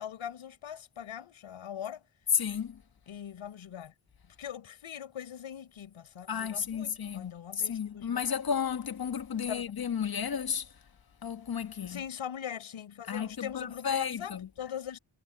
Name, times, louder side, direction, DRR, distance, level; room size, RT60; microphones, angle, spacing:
voice 1, 0.0-2.0 3.1-3.9 4.3-8.3 9.5-9.7 11.9-15.0, left 9 dB, 85° left, 5.7 m, -41 dB
voice 2, 2.3-2.8 6.3-10.7 11.2-12.0 13.1-14.5, left 7 dB, 50° left, 1.4 m, -33 dB
cardioid pair, 60°, 47 cm